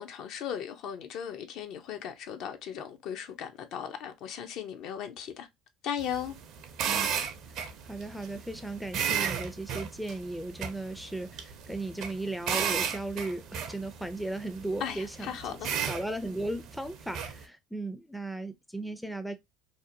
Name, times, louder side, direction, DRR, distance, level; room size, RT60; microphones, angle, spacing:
voice 1, 0.0-5.5 5.8-6.4 14.8-15.7, left 8 dB, 60° left, 0.5 m, -37 dB
sound 1, 6.0-17.4, right 7 dB, 60° right, 0.5 m, -35 dB
voice 2, 7.8-15.3 15.7-19.3, right 2 dB, ahead, 0.4 m, -36 dB
2.7 x 2.1 x 2.6 m
supercardioid pair, 85°, 0 cm